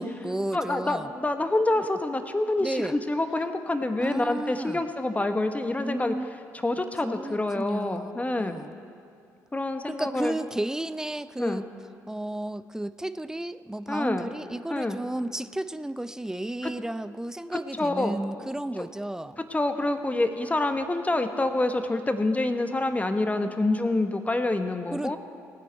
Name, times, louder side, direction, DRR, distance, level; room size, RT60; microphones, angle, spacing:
voice 1, 0.0-1.1 2.6-3.0 4.0-4.8 5.8-6.3 7.0-8.1 8.4-8.8 9.8-11.7 12.1-19.4 24.9-25.2, right 1 dB, 5° right, 14 dB, 0.5 m, -33 dB
voice 2, 0.5-6.1 6.6-8.5 9.5-10.3 11.4-11.7 13.9-14.3 14.7-15.0 16.6-16.7 17.8-18.2 18.8-18.9 19.5-25.2, left 2 dB, 15° left, 8 dB, 1.1 m, -27 dB
19.0 x 9.4 x 4.5 m, 2.4 s
hypercardioid pair, 50°, 9 cm